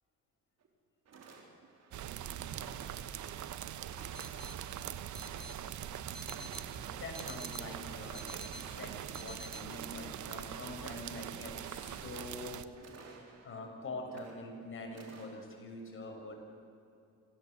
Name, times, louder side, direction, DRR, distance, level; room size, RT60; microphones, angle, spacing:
sound 1, 0.6-0.7 1.1-1.9 2.4-3.2 3.8-4.6 5.2-5.9 6.3-7.0 7.3-7.9 8.4-9.2 9.6-10.4 10.8-11.4 11.7-12.4 12.8-13.6 14.0-14.6 14.9-15.3, right 4 dB, 55° right, 4.3 m, -55 dB
sound 2, 1.9-12.6, right 10 dB, 75° right, 1.2 m, -42 dB
sound 3, 4.1-4.5 5.1-5.5 6.1-6.6 7.1-7.6 8.1-8.6 9.1-9.6, left 1 dB, ahead, 4.5 m, -48 dB
voice 1, 6.6-12.6 13.4-16.4, left 2 dB, 45° left, 1 dB, 6.7 m, -45 dB
26.5 x 17.0 x 8.1 m, 2.7 s
cardioid pair, 90°, 30 cm